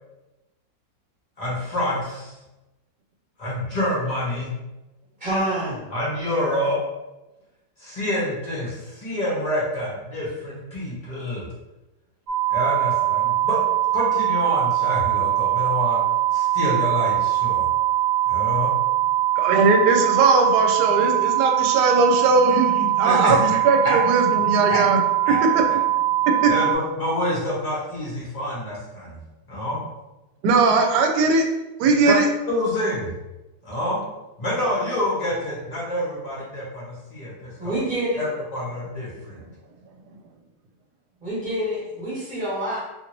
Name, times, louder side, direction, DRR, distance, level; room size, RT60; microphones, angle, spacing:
voice 1, 1.4-2.3 3.4-4.5 5.9-6.8 7.8-11.4 12.5-13.6 13.9-16.0 16.3-17.7 18.3-18.7 23.0-23.4 23.8-24.0 24.7-24.8 25.2-25.4 26.5-29.2 29.5-29.8 31.8-32.2 32.5-33.1 33.6-34.0 34.4-37.8 38.1-39.4, left 1 dB, 30° left, -7 dB, 0.8 m, -27 dB
voice 2, 5.2-5.9 37.6-38.2 41.2-42.8, right 1 dB, 30° right, -8 dB, 1.3 m, -27 dB
sound 1, 12.3-26.7, right 13 dB, 60° right, 1.1 m, -22 dB
voice 3, 19.4-25.0 25.3-25.6 26.4-26.5 30.4-31.4 31.8-32.3, right 3 dB, 80° right, 3 dB, 1.1 m, -19 dB
2.8 x 2.7 x 2.9 m, 1.0 s
omnidirectional pair, 1.7 m